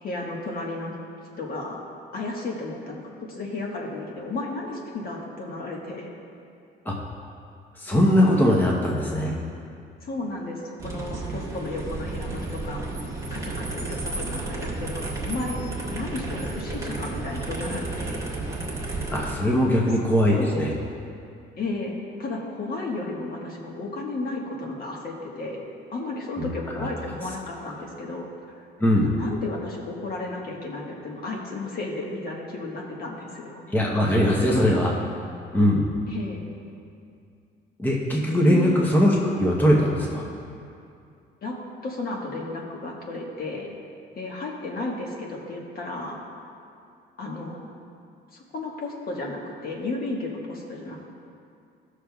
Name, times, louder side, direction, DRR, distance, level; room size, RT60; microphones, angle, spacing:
voice 1, 0.0-0.9 1.4-1.8 2.1-3.0 3.3-6.1 10.0-12.9 13.3-18.2 18.8-18.9 19.6-19.9 20.3-20.7 21.6-25.6 25.9-28.3 29.0-33.6 36.1-36.5 38.4-38.8 41.4-41.5 41.8-43.7 44.2-46.2 47.2-47.7 48.3-51.1, left 2 dB, 50° left, -2 dB, 1.4 m, -33 dB
voice 2, 7.8-9.3 19.1-20.7 26.4-26.5 26.7-26.9 28.8-29.1 33.7-35.0 35.5-35.8 37.8-40.2, equal, 10° left, -3 dB, 0.9 m, -21 dB
sound 1, 10.8-19.3, right 2 dB, 15° right, 1.4 m, -32 dB
14.5 x 6.4 x 2.3 m, 2.5 s
cardioid pair, 125°, 20 cm